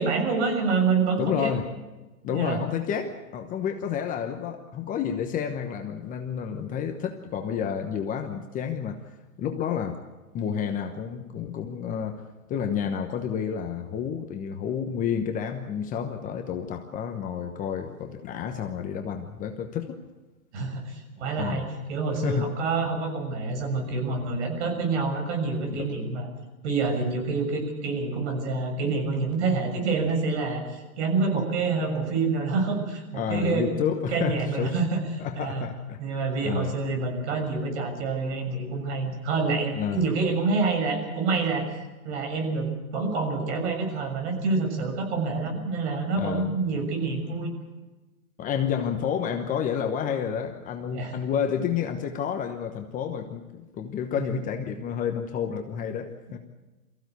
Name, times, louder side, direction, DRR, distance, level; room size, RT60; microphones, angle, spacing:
voice 1, 0.0-1.5 2.3-2.6 20.5-26.3 26.6-33.7 34.1-35.0 35.4-35.7 36.0-41.7 42.0-47.5 50.9-51.2 54.2-54.3, right 4 dB, 50° right, 4 dB, 6.8 m, -27 dB
voice 2, 1.2-1.7 2.2-9.0 9.4-10.0 10.3-12.2 12.5-20.0 21.4-21.6 22.2-22.5 25.7-25.9 31.8-31.9 33.1-34.8 35.2-36.0 36.4-36.7 39.8-40.0 46.2-46.5 48.4-56.4, left 8 dB, 20° left, 5 dB, 1.1 m, -30 dB
23.5 x 15.5 x 8.2 m, 1.1 s
hypercardioid pair, 135°, 45 cm